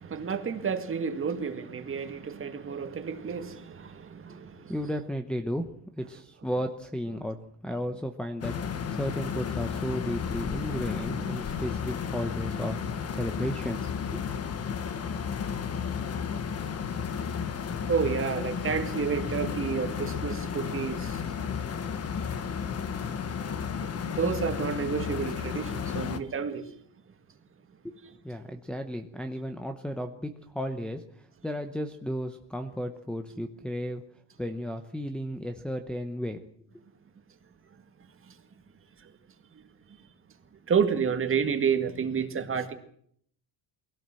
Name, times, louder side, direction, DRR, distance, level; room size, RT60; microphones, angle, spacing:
voice 1, 0.0-4.7 17.9-21.2 23.8-26.7 39.0-39.1 40.7-42.7, right 6 dB, 25° right, 1.9 m, -30 dB
voice 2, 4.7-7.4 7.6-14.2 27.8-27.9 28.2-34.0 34.4-36.4, equal, ahead, 0.9 m, -34 dB
sound 1, 8.4-26.2, left 7 dB, 30° left, 1.3 m, -33 dB
23.0 x 17.0 x 7.7 m
cardioid pair, 165°, 46 cm